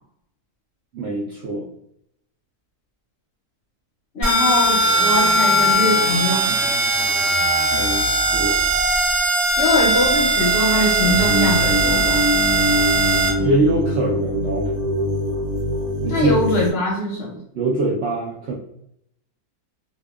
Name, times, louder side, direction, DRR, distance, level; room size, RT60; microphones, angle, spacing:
voice 1, 0.9-1.6 7.7-8.6 13.3-14.7 16.0-16.4 17.5-18.5, right 2 dB, 70° right, -4 dB, 0.6 m, -23 dB
voice 2, 4.1-6.5 9.6-12.2 16.1-17.4, left 1 dB, 55° left, -3 dB, 0.7 m, -22 dB
sound 1, 4.2-13.3, right 2 dB, 30° right, 1.2 m, -19 dB
sound 2, 11.0-16.7, left 1 dB, 90° right, 1.1 m, -23 dB
2.6 x 2.2 x 2.3 m, 0.72 s
omnidirectional pair, 1.6 m